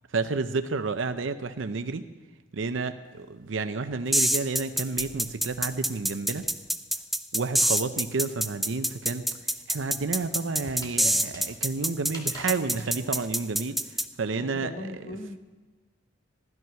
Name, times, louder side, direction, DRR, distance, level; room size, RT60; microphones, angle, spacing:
voice 1, 0.1-2.0 2.5-6.5 7.3-9.2 9.7-13.8 14.2-14.7, right 4 dB, 75° right, 9 dB, 0.7 m, -30 dB
sound 1, 3.1-6.8 7.1-13.0, left 1 dB, 20° left, 2.0 m, -50 dB
sound 2, 4.1-14.0, right 1 dB, ahead, 0.4 m, -26 dB
voice 2, 14.4-15.4, left 2 dB, 40° left, 5 dB, 1.1 m, -39 dB
15.0 x 12.0 x 5.7 m, 1.2 s
head